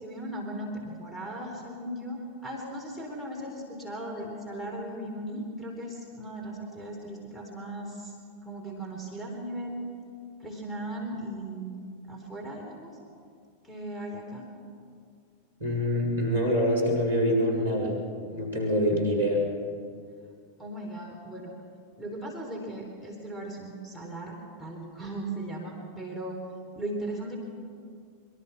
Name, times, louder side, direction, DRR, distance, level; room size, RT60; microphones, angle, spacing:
voice 1, 0.0-8.2 8.4-9.9 10.4-13.0 13.6-14.5 20.6-21.5 22.0-26.4 26.7-27.4, right 1 dB, 5° left, -1 dB, 4.2 m, -37 dB
voice 2, 15.6-17.9 18.3-19.4, equal, 75° right, -1 dB, 6.1 m, -25 dB
24.5 x 22.5 x 6.1 m, 2.3 s
figure-of-eight pair, 90°, 0 cm